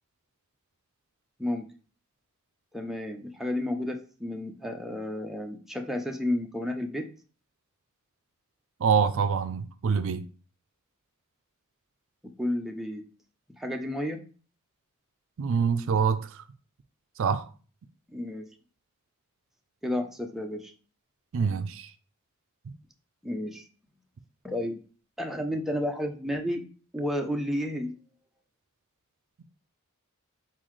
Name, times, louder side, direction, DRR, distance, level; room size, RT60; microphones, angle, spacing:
voice 1, 2.7-7.1 12.4-13.0 13.6-14.2 18.1-18.5 19.8-20.7 23.2-23.7 24.4-24.8 25.2-26.6 26.9-27.9, left 1 dB, ahead, 0.5 m, -31 dB
voice 2, 8.8-10.2 15.4-16.4 17.2-17.5 21.3-21.9 22.7-22.8, right 6 dB, 65° right, 0.4 m, -25 dB
4.3 x 3.9 x 3.1 m
head